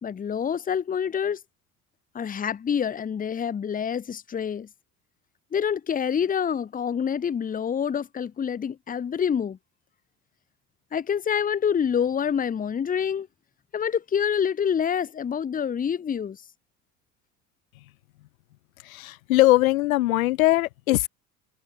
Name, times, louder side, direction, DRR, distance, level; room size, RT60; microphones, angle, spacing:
voice 1, 0.0-1.4 2.1-4.7 5.5-9.6 10.9-13.3 13.7-16.4, left 7 dB, 20° left, 0.9 m, -27 dB
voice 2, 18.8-21.1, left 17 dB, 70° left, 0.8 m, -21 dB
figure-of-eight pair, 65°, 42 cm